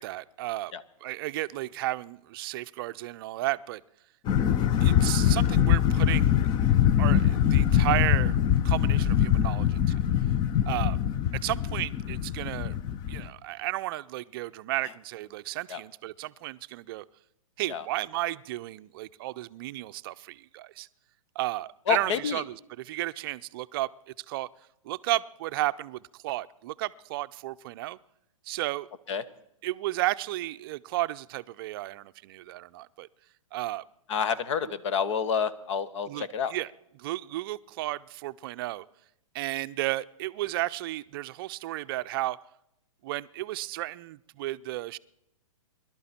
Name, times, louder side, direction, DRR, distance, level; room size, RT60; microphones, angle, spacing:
voice 1, 0.0-0.7 1.0-3.8 4.8-6.5 7.0-8.4 8.6-10.0 10.7-11.0 11.4-12.8 13.1-17.0 17.6-20.9 21.4-23.9 24.2-24.5 24.8-28.0 28.5-28.9 29.6-33.1 33.5-33.8 36.1-38.9 39.3-42.4 43.0-45.0, right 17 dB, 45° right, 0.5 m, -33 dB
sound 1, 4.3-13.3, left 10 dB, 25° left, 0.6 m, -23 dB
voice 2, 21.9-22.4 29.1-29.2 34.1-36.5, left 7 dB, 60° left, 1.2 m, -28 dB
22.5 x 12.0 x 4.3 m
hypercardioid pair, 125°, 17 cm